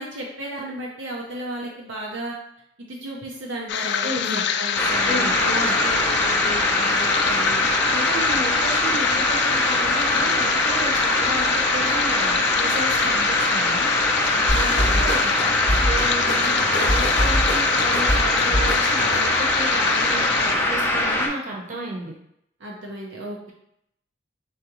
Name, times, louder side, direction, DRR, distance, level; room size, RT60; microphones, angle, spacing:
voice 1, 0.0-2.3 2.8-7.7 14.5-15.1 16.2-16.6 22.6-23.5, right 1 dB, 70° right, -2 dB, 0.7 m, -34 dB
sound 1, 3.7-20.5, left 8 dB, 60° left, 0.3 m, -26 dB
voice 2, 4.0-4.4 5.0-5.8 7.9-13.9 14.2-22.1, right 1 dB, 45° right, -2 dB, 1.0 m, -33 dB
sound 2, 4.7-21.3, left 1 dB, 10° left, 0.5 m, -22 dB
sound 3, 14.5-19.4, left 1 dB, 45° left, 0.8 m, -25 dB
3.9 x 3.4 x 3.0 m, 0.76 s
head